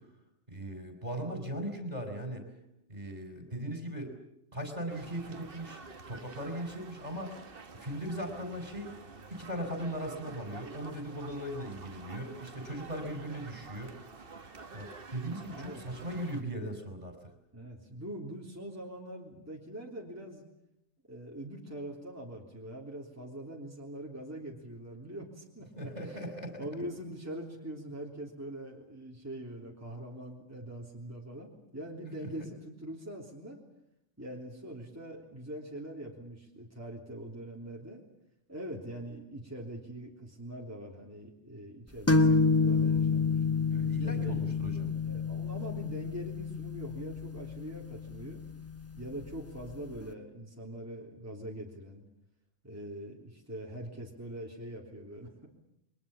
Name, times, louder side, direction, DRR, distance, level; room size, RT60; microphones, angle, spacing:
voice 1, 0.5-2.5 2.9-4.1 4.5-5.8 6.1-7.3 7.8-8.9 9.3-14.0 14.7-17.3 25.8-26.6 32.2-32.3 43.7-45.0, right 1 dB, 35° right, 6 dB, 4.7 m, -38 dB
sound 1, 4.9-16.4, right 4 dB, 50° right, 1.6 m, -49 dB
voice 2, 15.4-15.8 17.5-20.4 21.1-26.3 26.6-33.6 34.2-38.0 38.5-43.4 44.0-44.5 45.1-48.4 49.0-52.0 52.6-55.5, right 1 dB, 10° right, -2 dB, 3.5 m, -43 dB
sound 2, 42.1-49.6, left 4 dB, 10° left, 1.2 m, -29 dB
29.5 x 23.0 x 7.2 m, 0.82 s
omnidirectional pair, 1.2 m